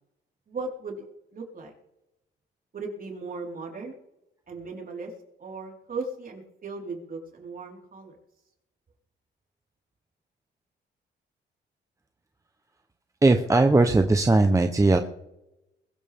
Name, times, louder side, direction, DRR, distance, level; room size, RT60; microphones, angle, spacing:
voice 1, 0.5-1.1 1.3-1.7 2.7-3.9 4.5-5.1 5.4-8.2, right 3 dB, 45° right, -1 dB, 4.6 m, -37 dB
voice 2, 13.2-15.0, right 2 dB, 15° right, 6 dB, 1.0 m, -19 dB
21.5 x 13.0 x 3.7 m, 0.89 s
cardioid pair, 90°, 20 cm